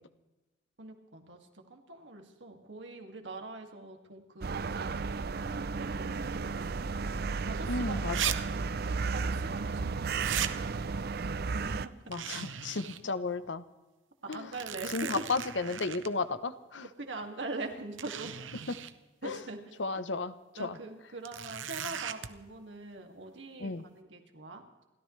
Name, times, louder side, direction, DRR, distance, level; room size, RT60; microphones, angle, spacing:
voice 1, 0.8-8.1 8.9-10.6 11.2-11.8 14.2-15.2 17.0-18.3 19.2-19.6 19.9-20.0 20.6-24.9, right 2 dB, 70° right, 3 dB, 2.3 m, -43 dB
sound 1, 4.4-11.9, right 4 dB, 55° right, 0.5 m, -33 dB
voice 2, 7.7-8.4 12.1-13.6 14.3-14.5 14.9-16.9 19.2-19.4 19.8-20.3 20.6-20.8 23.6-23.8, left 3 dB, 70° left, 13 dB, 0.9 m, -33 dB
sound 2, 8.1-8.4 8.6-8.7 10.2-10.5 12.1-13.0 13.4-13.5 14.3-16.1 17.2-17.3 18.0-18.9 21.3-22.3, right 10 dB, 90° right, 0.9 m, -37 dB
29.5 x 14.0 x 3.3 m, 1.1 s
head